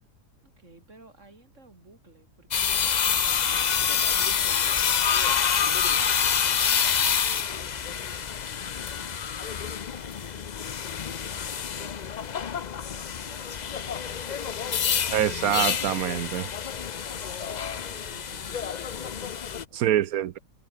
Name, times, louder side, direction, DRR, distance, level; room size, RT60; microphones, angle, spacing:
voice 1, 0.4-9.3 9.8-10.5 11.0-12.4 12.7-15.2 17.0-20.4, right 2 dB, 45° right, 4.4 m, -55 dB
sound 1, 2.5-19.6, left 7 dB, 85° left, 0.3 m, -27 dB
voice 2, 15.1-16.5 19.7-20.4, right 11 dB, 70° right, 1.0 m, -25 dB
omnidirectional pair, 1.8 m